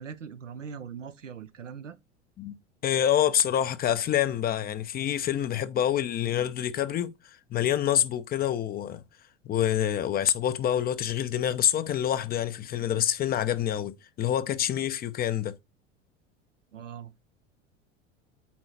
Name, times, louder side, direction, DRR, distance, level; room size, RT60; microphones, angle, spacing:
voice 1, 0.0-2.0 16.7-17.1, right 7 dB, 80° right, 0.8 m, -41 dB
voice 2, 2.8-7.1 7.5-9.0 9.5-15.5, left 10 dB, 25° left, 0.6 m, -26 dB
8.7 x 3.9 x 4.2 m
figure-of-eight pair, 80°, 37 cm